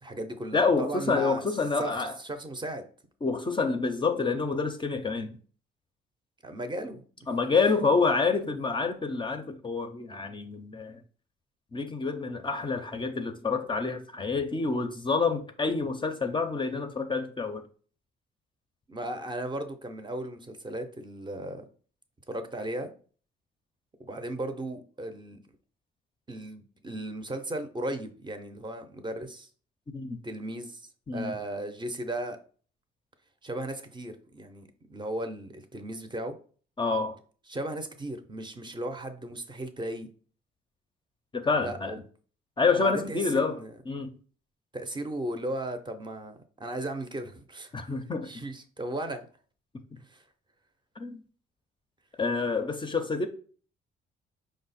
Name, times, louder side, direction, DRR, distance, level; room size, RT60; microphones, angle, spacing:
voice 1, 0.0-1.4 1.8-2.8 6.4-7.0 8.3-8.4 18.9-21.7 22.3-22.9 24.0-25.4 26.3-29.5 30.2-30.8 31.1-32.4 33.4-36.4 37.5-40.1 41.6-42.0 42.7-43.7 44.7-47.9 48.2-49.3 50.0-50.2, right 1 dB, 25° right, 0.6 m, -36 dB
voice 2, 0.5-2.2 3.2-5.4 7.3-11.0 11.7-17.6 29.9-30.2 31.1-31.3 36.8-37.2 41.3-41.9 42.6-43.6 43.9-44.1 47.7-48.4 51.0-51.2 52.2-53.3, left 4 dB, 25° left, 0.5 m, -28 dB
4.8 x 2.1 x 4.0 m
cardioid pair, 90°, 20 cm